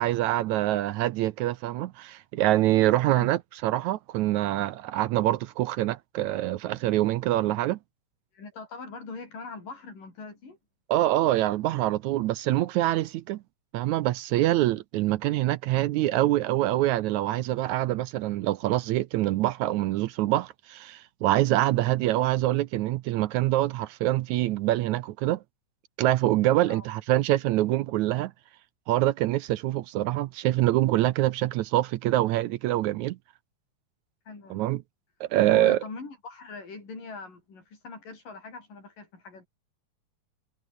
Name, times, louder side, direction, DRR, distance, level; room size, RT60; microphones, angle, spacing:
voice 1, 0.0-7.8 10.9-13.4 13.7-25.4 26.0-28.3 28.9-33.2 34.5-34.8 35.2-35.8, right 15 dB, 75° right, 1.9 m, -25 dB
voice 2, 8.3-10.6 26.7-26.9 34.3-34.7 35.5-39.5, left 4 dB, 90° left, 9.0 m, -42 dB
omnidirectional pair, 3.7 m